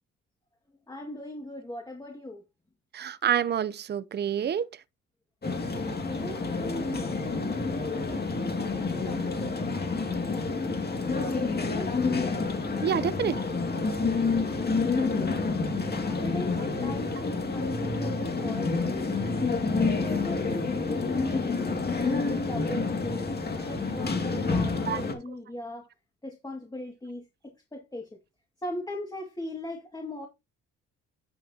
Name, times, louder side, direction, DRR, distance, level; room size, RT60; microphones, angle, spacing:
voice 1, 0.9-2.4 5.9-9.9 10.3-11.9 14.3-15.6 16.0-19.2 19.8-23.3 23.7-25.9 26.2-28.1 28.6-30.3, left 1 dB, 15° left, 2.1 m, -39 dB
voice 2, 2.9-4.7 12.8-13.4 24.9-25.0, right 8 dB, 35° right, 0.6 m, -27 dB
sound 1, 5.4-25.1, left 4 dB, 30° left, 2.2 m, -28 dB
10.5 x 6.8 x 2.8 m
cardioid pair, 90°, 30 cm